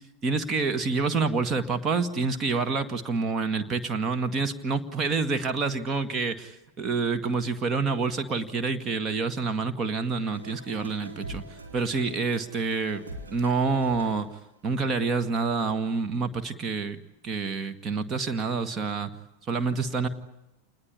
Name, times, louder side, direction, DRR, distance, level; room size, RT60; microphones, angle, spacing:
voice 1, 0.2-11.4 11.7-14.3 14.6-17.0 17.2-19.1 19.5-20.1, right 4 dB, 25° right, 8 dB, 1.9 m, -27 dB
sound 1, 10.3-14.5, right 2 dB, 75° right, 4.1 m, -44 dB
27.5 x 20.5 x 9.9 m, 0.95 s
figure-of-eight pair, 90°, 0 cm